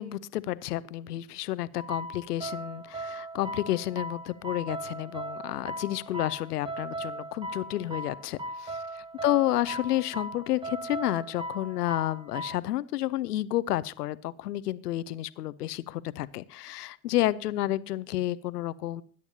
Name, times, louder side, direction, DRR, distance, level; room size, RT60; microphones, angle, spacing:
voice 1, 0.0-8.8 9.2-19.0, left 14 dB, 70° left, 18 dB, 0.7 m, -30 dB
sound 1, 1.7-12.6, right 1 dB, 10° right, 0.8 m, -38 dB
21.0 x 10.5 x 2.8 m, 0.42 s
figure-of-eight pair, 70°, 48 cm